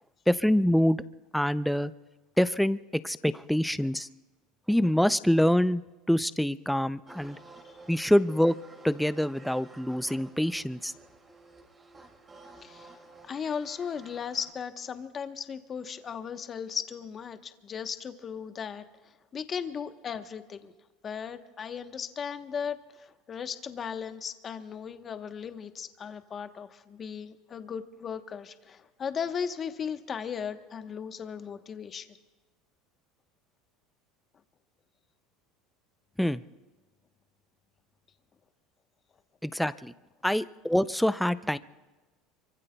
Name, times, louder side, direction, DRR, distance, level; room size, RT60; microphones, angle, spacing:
voice 1, 0.3-1.0 1.3-1.9 2.4-2.8 3.0-4.1 4.7-5.8 6.1-7.4 7.9-8.5 8.8-10.9 36.2-36.4 39.4-39.9 40.2-41.6, equal, ahead, 14 dB, 0.5 m, -25 dB
sound 1, 7.0-14.5, right 2 dB, 20° right, 2.4 m, -52 dB
voice 2, 12.5-13.0 13.2-18.8 19.3-20.7 21.0-32.2, left 7 dB, 30° left, 9 dB, 1.0 m, -37 dB
26.0 x 24.0 x 2.3 m, 1.2 s
supercardioid pair, 115°, 0 cm